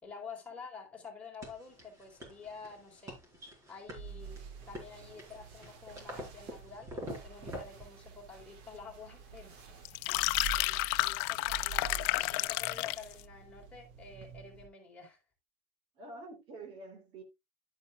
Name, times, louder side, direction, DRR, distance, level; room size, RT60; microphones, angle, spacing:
voice 1, 0.0-3.2 3.7-10.1 10.5-15.2, left 5 dB, 10° left, 4.1 m, -49 dB
sound 1, 1.4-7.9, equal, 25° right, 4.6 m, -46 dB
sound 2, 4.0-14.7, right 6 dB, 85° right, 2.9 m, -48 dB
sound 3, 9.8-13.1, left 22 dB, 80° left, 0.6 m, -31 dB
voice 2, 15.9-17.2, right 2 dB, 45° right, 3.1 m, -47 dB
11.5 x 9.4 x 2.4 m
cardioid pair, 180°, 13 cm